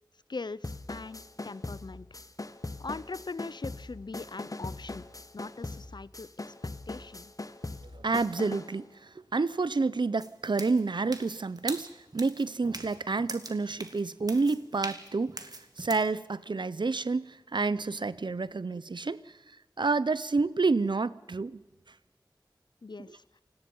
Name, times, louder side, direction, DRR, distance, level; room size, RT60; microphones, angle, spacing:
voice 1, 0.3-2.1 2.8-5.1 5.3-7.3 22.8-23.2, left 3 dB, 70° left, 0.6 m, -41 dB
sound 1, 0.6-8.8, left 2 dB, 50° left, 1.2 m, -41 dB
voice 2, 7.8-19.4 19.8-21.6 23.1-23.2, right 3 dB, 80° right, 0.7 m, -29 dB
sound 2, 10.2-16.1, right 2 dB, 55° right, 2.2 m, -42 dB
28.5 x 18.0 x 5.5 m
wide cardioid pair, 45°, 8 cm